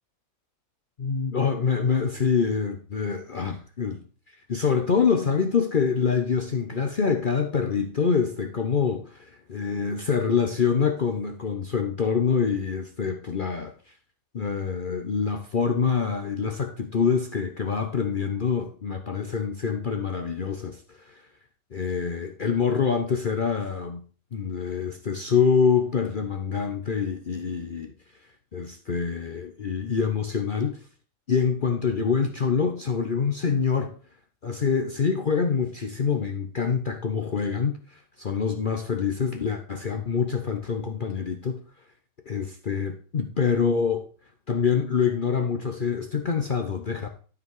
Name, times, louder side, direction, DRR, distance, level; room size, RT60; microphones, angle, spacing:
voice 1, 1.0-4.0 4.5-13.7 14.3-21.2 21.7-24.0 24.3-27.9 28.5-30.8 31.3-33.9 34.4-41.6 42.3-44.0 44.5-47.1, left 6 dB, 45° left, 0.8 m, -25 dB
12.5 x 5.2 x 4.7 m
omnidirectional pair, 1.5 m